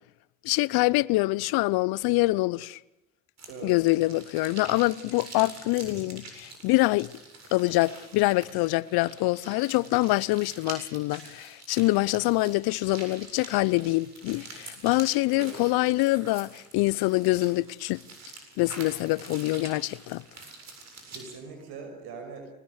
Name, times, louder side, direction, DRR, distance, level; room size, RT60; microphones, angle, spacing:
voice 1, 0.4-2.8 3.6-7.1 7.5-18.0 18.6-20.2, left 20 dB, 65° left, 0.8 m, -25 dB
sound 1, 3.4-21.4, right 3 dB, 40° right, 7.7 m, -46 dB
voice 2, 3.5-3.8 9.8-10.1 15.3-15.6 21.1-22.5, right 4 dB, 70° right, 6.1 m, -42 dB
23.0 x 20.0 x 8.2 m
supercardioid pair, 75°, 39 cm